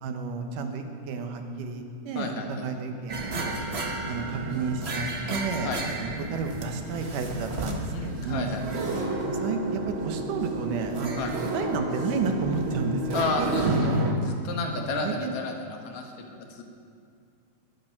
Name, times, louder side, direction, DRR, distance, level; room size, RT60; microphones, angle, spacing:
voice 1, 0.0-3.6 4.1-5.7 6.0-8.5 9.2-11.2 11.5-14.1 14.7-15.3, right 4 dB, 80° right, 5 dB, 2.8 m, -31 dB
voice 2, 2.2-2.6 5.6-5.8 7.9-8.6 11.2-11.3 13.1-13.9 14.2-15.5 15.8-16.6, left 3 dB, 65° left, 3 dB, 2.5 m, -31 dB
sound 1, 3.1-14.1, right 2 dB, 60° right, 0.6 m, -31 dB
21.0 x 11.0 x 5.9 m, 2.4 s
omnidirectional pair, 3.7 m